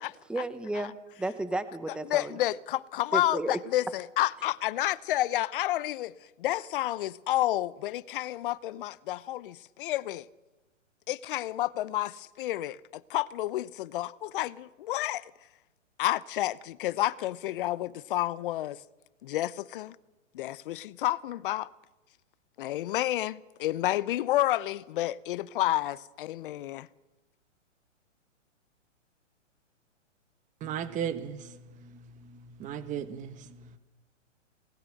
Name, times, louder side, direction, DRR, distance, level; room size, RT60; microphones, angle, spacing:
voice 1, 0.3-0.9 1.2-2.4 3.1-3.6, right 2 dB, ahead, 1.0 m, -32 dB
voice 2, 2.1-6.1 6.4-10.3 11.1-15.3 16.0-18.8 19.2-20.0 20.3-21.7 22.6-26.9, left 15 dB, 45° left, 0.9 m, -30 dB
voice 3, 30.6-33.8, right 8 dB, 20° right, 1.5 m, -37 dB
27.5 x 19.5 x 6.6 m
hypercardioid pair, 140°, 38 cm